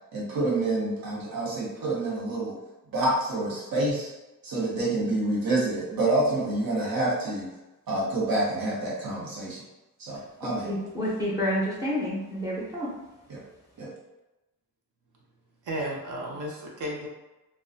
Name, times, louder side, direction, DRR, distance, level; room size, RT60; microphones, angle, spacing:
voice 1, 0.1-2.5 2.9-4.1 4.4-7.5 7.9-9.6 10.0-10.7 13.3-13.4 13.8-13.9, right 2 dB, 85° right, -5 dB, 0.9 m, -27 dB
voice 2, 10.6-12.9, equal, 10° right, -6 dB, 0.6 m, -29 dB
voice 3, 15.6-17.1, equal, 60° right, -3 dB, 0.7 m, -33 dB
2.5 x 2.3 x 2.4 m, 1.0 s
wide cardioid pair, 140°, 35 cm